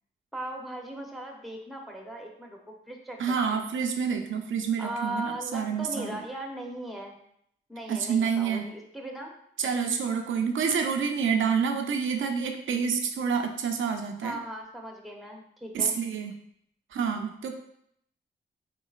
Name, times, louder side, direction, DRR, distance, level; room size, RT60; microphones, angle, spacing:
voice 1, 0.3-2.6 2.9-3.7 4.8-7.2 7.7-9.3 14.2-16.0, right 1 dB, ahead, 1 dB, 0.8 m, -38 dB
voice 2, 3.2-6.2 7.9-8.7 9.6-14.4 15.7-16.3 16.9-17.5, right 6 dB, 75° right, 5 dB, 0.5 m, -28 dB
3.8 x 3.7 x 2.4 m, 0.71 s
cardioid pair, 55°, 20 cm